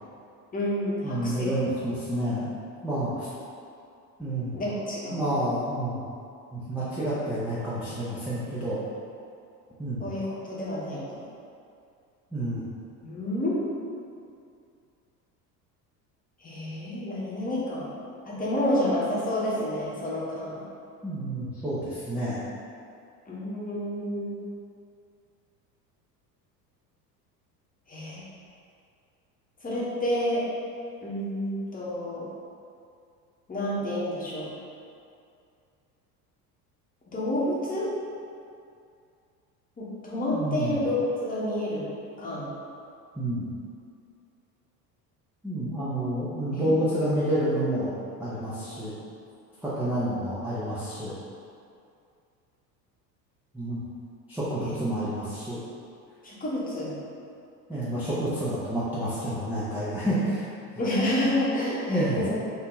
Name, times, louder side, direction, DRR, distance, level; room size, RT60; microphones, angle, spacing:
voice 1, 0.5-1.5 4.5-5.2 10.0-11.2 13.0-13.6 16.4-17.9 18.2-20.6 23.3-24.4 27.9-28.2 29.6-30.4 31.0-32.3 33.5-34.5 37.1-37.9 39.8-41.8 42.2-42.5 46.5-46.8 54.6-54.7 56.2-56.9 60.8-62.2, left 1 dB, 15° left, -7 dB, 1.1 m, -29 dB
voice 2, 1.0-2.5 2.8-3.3 4.2-4.6 5.1-6.0 6.5-8.8 9.8-10.0 12.3-12.6 21.0-22.4 40.3-40.8 43.2-43.5 45.4-47.9 48.2-48.9 49.6-51.1 53.5-53.8 54.3-55.6 57.7-60.4 61.9-62.2, right 1 dB, 5° right, -12 dB, 0.7 m, -29 dB
3.7 x 2.6 x 3.8 m, 2.4 s
figure-of-eight pair, 70°, 49 cm